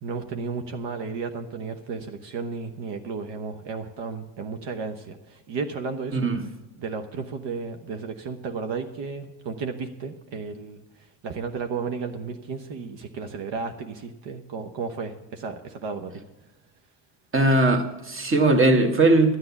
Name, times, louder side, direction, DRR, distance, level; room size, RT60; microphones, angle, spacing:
voice 1, 0.0-6.5 6.8-16.2, right 5 dB, 60° right, 6 dB, 1.1 m, -33 dB
voice 2, 6.1-6.4 17.3-19.4, right 2 dB, 25° right, 6 dB, 1.6 m, -19 dB
12.5 x 7.7 x 7.1 m, 1.1 s
supercardioid pair, 90°, 50 cm